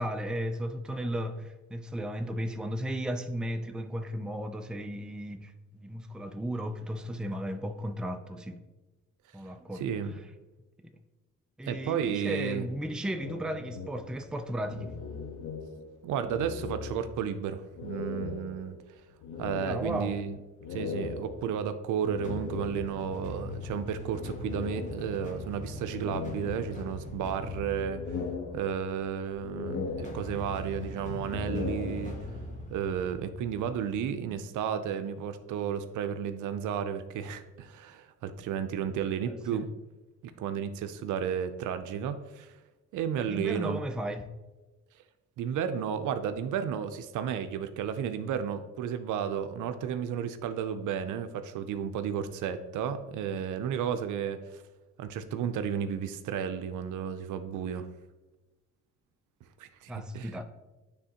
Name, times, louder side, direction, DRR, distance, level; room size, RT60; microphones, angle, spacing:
voice 1, 0.0-8.6 9.3-9.8 10.8-11.0 11.6-15.0 19.6-20.2 39.2-39.7 43.2-44.3 59.9-60.4, equal, 5° right, 0.4 m, -35 dB
voice 2, 9.7-10.1 11.6-12.7 16.0-18.8 19.4-20.4 20.7-28.2 28.5-32.2 32.7-39.7 40.4-42.5 42.9-43.8 45.4-54.6 55.0-57.9 59.6-60.3, right 8 dB, 80° right, 0.6 m, -33 dB
sound 1, 13.2-16.0 16.2-17.4 17.8-23.2 24.1-25.4 25.9-27.2 27.6-29.1 29.4-30.7 31.2-32.5, left 4 dB, 75° left, 0.8 m, -39 dB
sound 2, 22.2-34.1, left 1 dB, 25° left, 1.3 m, -41 dB
9.7 x 3.5 x 2.9 m
cardioid pair, 90°, 30 cm